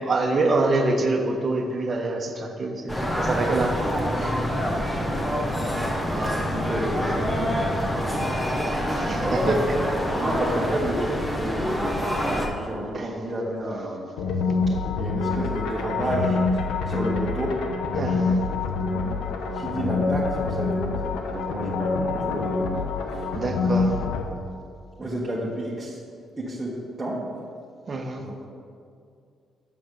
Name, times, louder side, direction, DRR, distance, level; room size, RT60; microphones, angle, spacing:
voice 1, 0.0-3.8 4.2-4.3 8.9-9.5 12.9-13.1 17.9-18.4 23.3-24.0 27.9-28.3, right 2 dB, 40° right, 4 dB, 1.1 m, -26 dB
sound 1, 2.9-12.5, equal, 10° left, 1.3 m, -26 dB
voice 2, 5.6-8.3 9.1-9.7 10.1-14.1 15.0-16.4 16.9-17.6 19.5-22.7 23.1-23.3 25.0-26.0 26.4-27.3 28.2-28.5, right 1 dB, 15° right, -8 dB, 1.5 m, -30 dB
sound 2, 14.2-24.2, left 4 dB, 85° left, 0.9 m, -26 dB
7.0 x 5.7 x 6.8 m, 2.4 s
cardioid pair, 90°, 0 cm